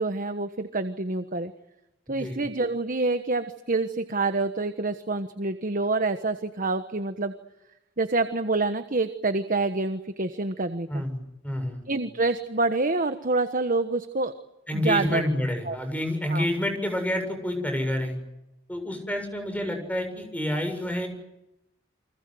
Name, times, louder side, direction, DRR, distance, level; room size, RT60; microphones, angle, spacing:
voice 1, 0.0-1.5 2.1-7.3 8.0-11.0 11.9-14.3 14.7-15.2 15.7-15.8 16.3-16.5, right 3 dB, 45° right, 9 dB, 1.3 m, -27 dB
voice 2, 11.4-11.8 14.7-18.2 18.7-21.1, left 1 dB, 10° left, 6 dB, 7.4 m, -28 dB
30.0 x 25.0 x 7.9 m, 0.91 s
head